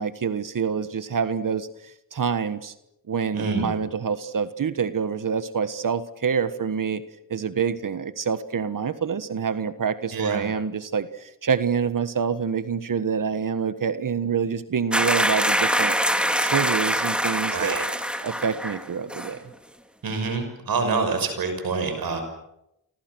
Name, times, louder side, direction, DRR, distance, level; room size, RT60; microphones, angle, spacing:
voice 1, 0.0-2.7 3.1-7.0 7.3-16.0 16.4-17.8 18.2-19.4, right 6 dB, 65° right, 12 dB, 1.5 m, -26 dB
voice 2, 3.3-3.7 10.1-10.4 17.5-17.8 20.0-22.2, right 4 dB, 85° right, 6 dB, 6.2 m, -26 dB
sound 1, 14.9-18.8 19.1-19.3, equal, 5° right, 2.9 m, -24 dB
29.5 x 24.5 x 6.3 m, 0.82 s
cardioid pair, 50°, 35 cm